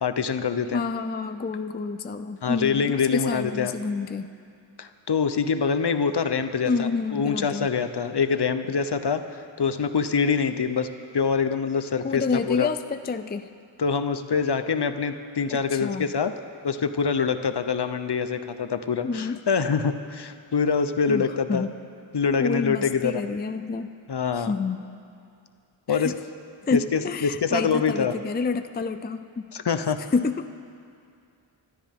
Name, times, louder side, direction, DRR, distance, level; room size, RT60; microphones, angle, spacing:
voice 1, 0.0-0.8 2.4-3.7 4.8-10.9 11.1-12.7 13.8-16.3 16.6-21.7 22.1-23.1 24.1-24.5 25.9-26.1 26.7-28.1 29.5-30.0, left 6 dB, 55° left, 9 dB, 0.8 m, -25 dB
voice 2, 0.7-4.3 6.7-7.7 12.0-13.5 15.5-16.1 19.0-19.4 21.1-21.7 22.4-23.9 24.3-24.8 25.9-26.2 26.6-29.5 30.1-30.5, left 4 dB, 20° left, 9 dB, 0.4 m, -28 dB
24.5 x 12.5 x 3.6 m, 2.4 s
wide cardioid pair, 55°, 48 cm